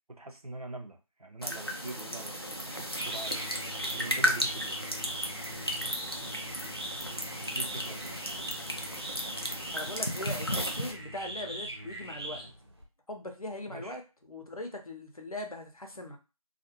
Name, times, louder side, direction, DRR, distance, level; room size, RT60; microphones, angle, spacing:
voice 1, 0.1-3.6 3.9-4.8 7.5-8.2 13.7-14.0, right 2 dB, 75° right, 4 dB, 0.8 m, -43 dB
sound 1, 1.4-10.9, equal, 40° left, 0.5 m, -34 dB
sound 2, 2.5-12.8, right 1 dB, 45° right, 0.8 m, -41 dB
voice 2, 9.7-12.5 13.1-14.0 14.3-16.2, left 1 dB, 70° left, 3 dB, 0.8 m, -40 dB
2.4 x 2.4 x 2.9 m, 0.30 s
figure-of-eight pair, 180°, 19 cm